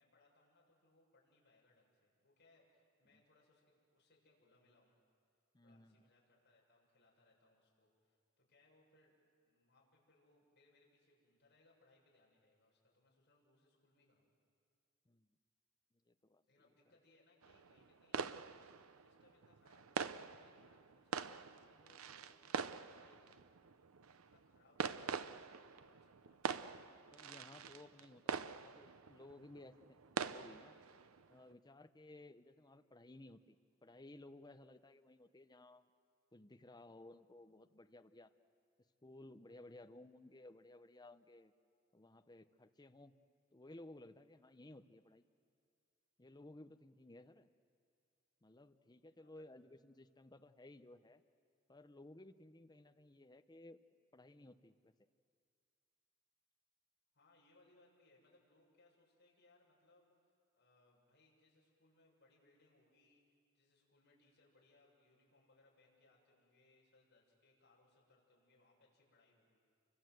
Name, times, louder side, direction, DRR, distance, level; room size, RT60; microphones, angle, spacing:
voice 1, 0.0-5.0 5.6-9.1 9.4-14.3 16.5-18.3 19.0-23.5 24.3-24.9 25.3-26.7 49.2-49.5 57.1-69.6, left 2 dB, 50° left, -3 dB, 7.1 m, -72 dB
voice 2, 5.5-6.0 15.1-15.3 16.1-16.4 27.1-30.8 31.3-33.6 33.8-35.8 36.3-38.3 39.0-41.5 41.9-43.1 43.5-45.2 46.2-47.5 48.4-51.2 51.7-53.8 54.1-54.9, left 2 dB, 20° left, 9 dB, 0.8 m, -58 dB
sound 1, 17.4-31.5, right 5 dB, 85° right, 0.7 m, -45 dB
29.5 x 24.5 x 7.8 m, 2.2 s
head